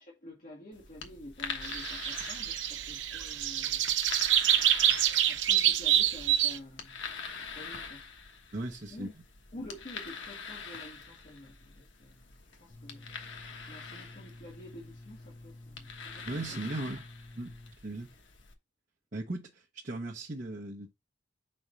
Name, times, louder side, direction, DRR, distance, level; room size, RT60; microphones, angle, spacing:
voice 1, 0.0-3.9 5.2-7.0 7.5-8.1 8.9-9.1 9.5-12.3 12.6-13.1 13.7-16.8, left 1 dB, 45° left, 1.8 m, -49 dB
sound 1, 0.7-18.5, left 5 dB, 80° left, 1.2 m, -45 dB
sound 2, 1.6-6.6, right 11 dB, 80° right, 0.7 m, -27 dB
voice 2, 8.5-9.1 16.3-17.0 17.4-17.5 17.8-18.1 19.1-20.9, right 2 dB, 45° right, 0.9 m, -37 dB
sound 3, 12.7-17.7, left 2 dB, 15° left, 2.2 m, -51 dB
4.6 x 4.3 x 5.1 m
head